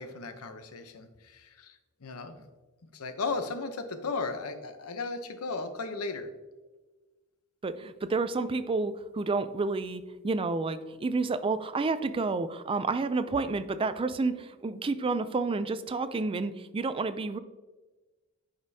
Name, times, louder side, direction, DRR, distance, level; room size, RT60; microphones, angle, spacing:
voice 1, 0.0-2.5 2.9-6.3, left 3 dB, 70° left, 9 dB, 0.7 m, -36 dB
voice 2, 7.6-17.4, right 3 dB, 25° right, 12 dB, 0.3 m, -30 dB
9.5 x 5.2 x 2.7 m, 1.2 s
head